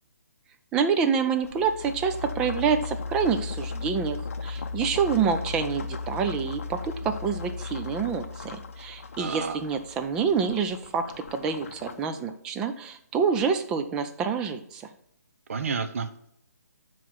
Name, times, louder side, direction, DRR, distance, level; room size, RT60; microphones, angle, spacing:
voice 1, 0.7-4.2 4.4-14.8, right 6 dB, 10° right, 7 dB, 0.3 m, -27 dB
sound 1, 1.4-12.1, left 4 dB, 50° left, 0.7 m, -36 dB
voice 2, 9.2-9.6 15.5-16.3, right 5 dB, 50° right, 7 dB, 0.7 m, -31 dB
9.2 x 3.1 x 5.7 m, 0.73 s
hypercardioid pair, 165°, 9 cm